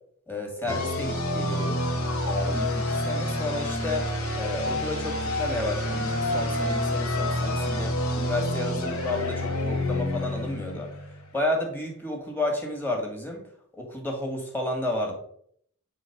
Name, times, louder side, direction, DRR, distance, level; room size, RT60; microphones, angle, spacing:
voice 1, 0.3-1.8 2.2-4.1 4.3-10.9 11.3-13.4 13.7-15.1, left 1 dB, 10° left, 1 dB, 2.0 m, -32 dB
sound 1, 0.7-11.3, left 1 dB, 70° left, 2.0 m, -28 dB
9.7 x 3.7 x 5.9 m, 0.64 s
head